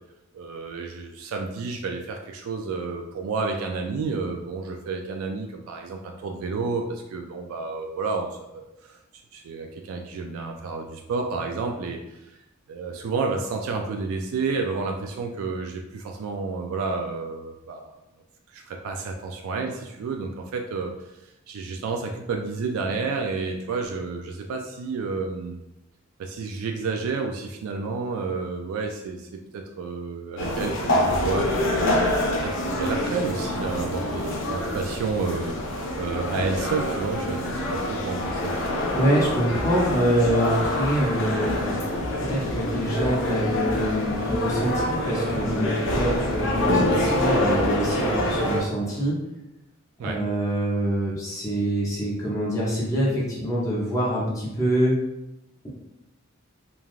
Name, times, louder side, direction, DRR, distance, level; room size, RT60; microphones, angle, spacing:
voice 1, 0.3-9.0 9.3-12.3 12.7-18.0 18.5-20.9 21.2-25.6 26.2-32.0 32.4-38.5 50.0-50.2, right 4 dB, 85° right, 3 dB, 0.3 m, -30 dB
sound 1, 30.4-48.6, left 1 dB, 60° left, 0.5 m, -26 dB
voice 2, 38.9-41.7 42.3-49.2 50.0-54.9, right 1 dB, 15° left, -7 dB, 0.6 m, -25 dB
3.2 x 2.3 x 2.4 m, 0.91 s
head